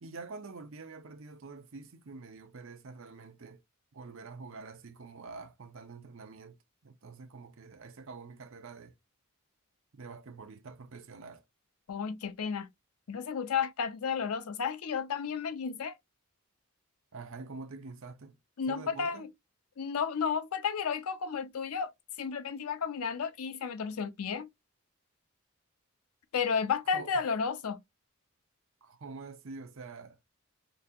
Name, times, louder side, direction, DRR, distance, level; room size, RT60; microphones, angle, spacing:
voice 1, 0.0-3.6 3.9-6.6 6.8-8.9 9.9-11.4 17.1-18.4 18.7-19.3 26.9-27.1 28.8-30.2, right 4 dB, 65° right, 0.6 m, -46 dB
voice 2, 11.9-12.7 13.1-15.9 18.6-19.3 19.8-21.9 22.2-24.5 26.3-27.8, left 6 dB, 90° left, 0.5 m, -32 dB
3.8 x 2.3 x 2.7 m
head